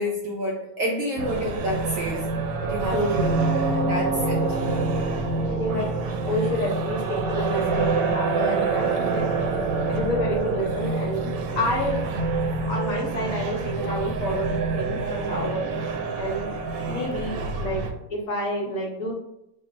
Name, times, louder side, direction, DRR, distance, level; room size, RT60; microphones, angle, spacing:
voice 1, 0.0-2.3 2.6-3.3 3.9-4.4, equal, 65° right, -1 dB, 0.8 m, -29 dB
sound 1, 1.2-17.9, right 3 dB, 90° right, 1.2 m, -26 dB
voice 2, 2.9-3.4 5.5-5.9 6.3-9.3 9.9-11.2 11.6-12.0 12.7-16.5 16.8-17.8 18.1-19.1, equal, 60° left, -2 dB, 1.2 m, -29 dB
4.2 x 3.0 x 2.5 m, 0.81 s
omnidirectional pair, 1.8 m